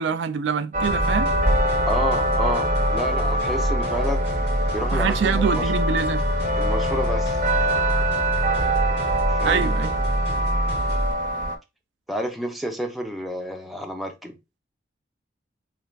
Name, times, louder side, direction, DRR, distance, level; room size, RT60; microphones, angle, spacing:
voice 1, 0.0-1.3 4.9-6.3 9.4-9.9, right 6 dB, 85° right, 0.4 m, -25 dB
sound 1, 0.7-11.6, right 1 dB, 45° right, 0.6 m, -25 dB
sound 2, 0.8-11.1, right 1 dB, 65° left, 1.9 m, -26 dB
voice 2, 1.9-4.3 4.7-5.6 6.6-7.4 9.3-9.7 12.1-14.4, equal, ahead, 0.6 m, -30 dB
4.0 x 3.2 x 2.4 m
head